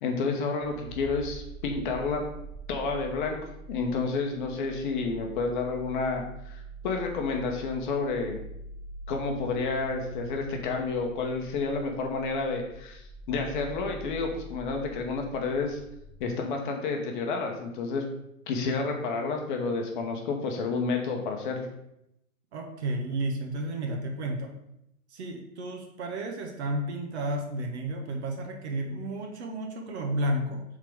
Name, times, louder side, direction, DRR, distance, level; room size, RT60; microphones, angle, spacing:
voice 1, 0.0-2.3 2.7-8.4 9.1-13.0 13.3-15.8 16.2-18.0 18.5-21.7, left 4 dB, 35° left, 2 dB, 0.9 m, -30 dB
sound 1, 0.6-16.3, right 2 dB, 25° right, 0.8 m, -44 dB
voice 2, 22.5-24.5 25.1-30.6, right 1 dB, 50° right, 3 dB, 1.2 m, -32 dB
7.1 x 3.8 x 3.5 m, 0.79 s
hypercardioid pair, 135°, 42 cm